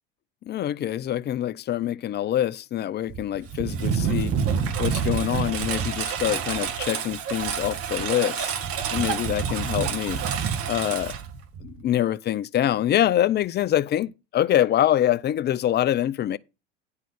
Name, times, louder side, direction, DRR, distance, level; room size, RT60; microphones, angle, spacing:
voice 1, 0.5-4.4 4.8-8.5 8.9-10.2 10.7-11.1 11.6-16.4, left 12 dB, 35° left, 0.6 m, -25 dB
Engine, 3.1-11.8, right 7 dB, 50° right, 1.9 m, -28 dB
10.5 x 4.1 x 6.9 m
hypercardioid pair, 80°, 30 cm